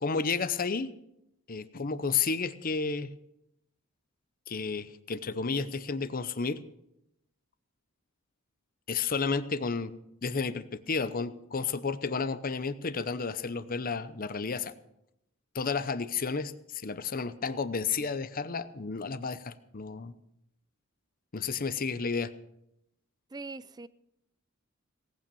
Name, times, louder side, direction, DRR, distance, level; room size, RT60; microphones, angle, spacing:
voice 1, 0.0-0.9 1.5-3.1 4.5-6.6 8.9-9.9 10.2-14.7 15.5-20.1 21.3-22.3, left 5 dB, 40° left, 14 dB, 0.8 m, -32 dB
voice 2, 23.3-23.9, right 3 dB, 20° right, 17 dB, 0.4 m, -41 dB
18.5 x 8.8 x 7.0 m, 0.82 s
head